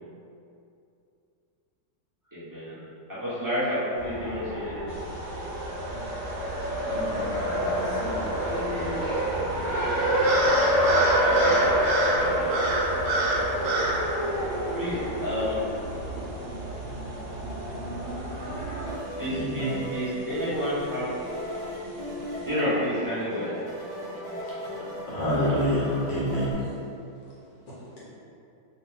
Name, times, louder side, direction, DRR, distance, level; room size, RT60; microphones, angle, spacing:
voice 1, 2.3-2.8 3.1-4.9 11.2-11.7 12.1-12.7 14.7-16.2 19.1-21.1 22.4-23.5 24.1-24.2, equal, 15° right, -13 dB, 0.6 m, -30 dB
Race car auto racing, 4.0-18.9, right 1 dB, 50° right, 1.1 m, -27 dB
sound 1, 4.9-22.5, right 1 dB, 75° right, 0.8 m, -34 dB
voice 2, 6.9-9.0, left 2 dB, 60° left, -6 dB, 1.2 m, -38 dB
sound 2, 18.9-26.5, equal, 20° left, 1.0 m, -37 dB
voice 3, 19.3-19.7 25.1-26.5, equal, 80° left, -9 dB, 2.1 m, -26 dB
4.3 x 2.5 x 3.5 m, 2.6 s
omnidirectional pair, 2.2 m